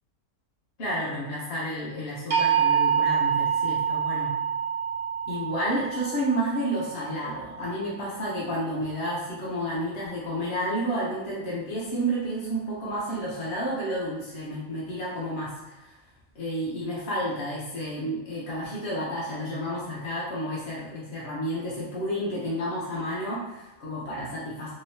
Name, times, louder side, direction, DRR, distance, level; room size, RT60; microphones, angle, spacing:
voice 1, 0.8-4.3 5.3-16.0 16.3-24.7, equal, 50° left, -7 dB, 1.0 m, -31 dB
sound 1, 2.3-8.3, right 8 dB, 45° right, 0.5 m, -27 dB
3.8 x 3.0 x 2.7 m, 1.0 s
omnidirectional pair, 1.4 m